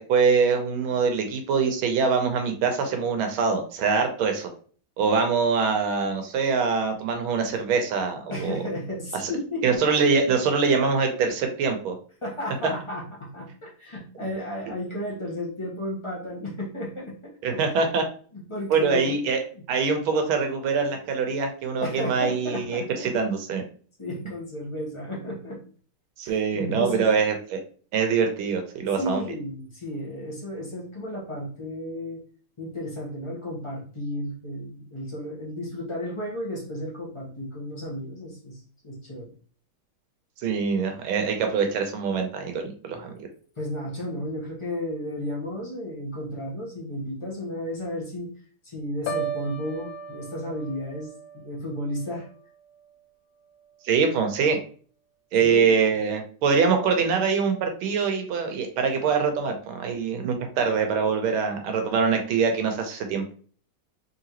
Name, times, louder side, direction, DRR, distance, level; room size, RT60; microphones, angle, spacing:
voice 1, 0.1-4.5 5.0-8.6 9.2-9.3 9.6-11.9 17.4-18.0 18.7-19.4 19.7-23.6 26.2-27.6 27.9-29.2 40.4-43.3 53.8-54.6 55.3-63.2, right 5 dB, 80° right, 5 dB, 1.6 m, -24 dB
voice 2, 8.3-9.6 12.2-17.6 18.3-19.3 19.5-19.7 21.8-23.1 24.0-25.6 26.2-27.1 28.9-32.2 32.6-39.3 43.0-43.1 43.6-48.3 48.6-52.3 55.4-55.7, left 1 dB, 20° left, -4 dB, 0.8 m, -33 dB
Piano, 49.1-53.0 53.4-53.8, right 4 dB, 70° left, 1.2 m, -37 dB
3.8 x 3.5 x 2.9 m, 0.43 s
omnidirectional pair, 2.3 m